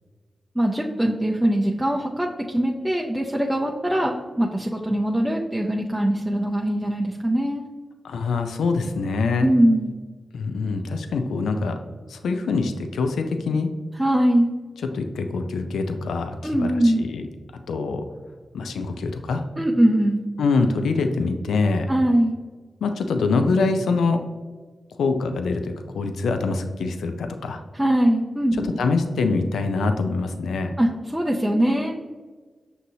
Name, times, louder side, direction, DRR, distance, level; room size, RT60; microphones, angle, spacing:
voice 1, 0.6-7.6 9.4-9.9 14.0-14.5 16.4-17.0 19.6-20.2 21.9-22.3 27.7-28.7 30.8-31.9, right 1 dB, 10° right, -2 dB, 0.5 m, -21 dB
voice 2, 8.0-9.5 10.3-11.8 12.1-13.7 14.9-17.2 17.7-18.0 18.5-19.4 20.4-21.9 22.8-24.2 25.0-27.6 28.8-30.7, left 4 dB, 90° left, 6 dB, 0.3 m, -24 dB
6.0 x 2.7 x 2.7 m, 1.4 s
cardioid pair, 40°, 0 cm